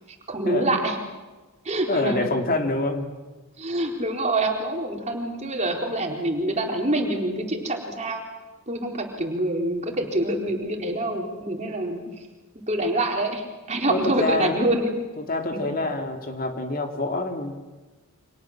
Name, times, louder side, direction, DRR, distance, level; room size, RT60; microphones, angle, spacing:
voice 1, 0.1-1.0 1.6-2.3 3.6-8.2 8.7-12.3 12.7-14.9 15.5-15.7, right 1 dB, 30° right, 1 dB, 4.1 m, -26 dB
voice 2, 1.9-3.1 12.1-12.2 13.9-14.6 15.2-17.6, left 2 dB, 40° left, 4 dB, 2.8 m, -26 dB
29.5 x 26.0 x 7.4 m, 1.2 s
head